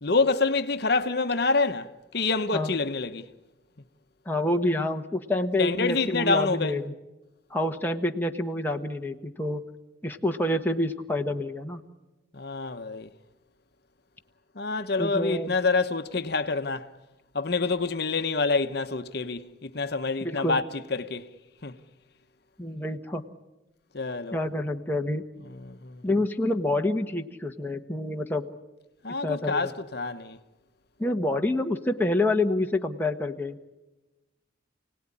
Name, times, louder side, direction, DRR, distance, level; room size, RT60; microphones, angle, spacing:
voice 1, 0.0-3.2 5.6-6.8 12.3-13.1 14.6-16.9 17.3-20.6 20.9-21.3 21.6-21.7 23.9-24.4 25.5-26.0 29.0-30.4, left 3 dB, 55° left, 1.0 m, -27 dB
voice 2, 4.2-6.9 7.5-9.6 10.0-11.8 15.0-15.5 20.2-20.6 22.6-23.3 24.3-25.2 26.0-28.5 29.2-29.7 31.0-33.7, left 1 dB, 10° left, 1.2 m, -27 dB
29.0 x 18.0 x 9.9 m
head